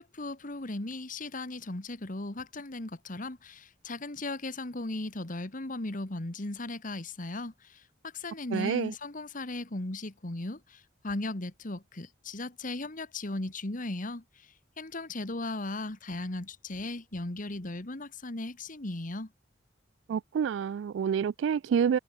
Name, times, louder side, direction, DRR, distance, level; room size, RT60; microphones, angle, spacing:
voice 1, 0.0-19.3, left 2 dB, 45° left, 1.7 m, -37 dB
voice 2, 8.5-8.9 20.1-22.0, right 7 dB, 70° right, 0.3 m, -28 dB
head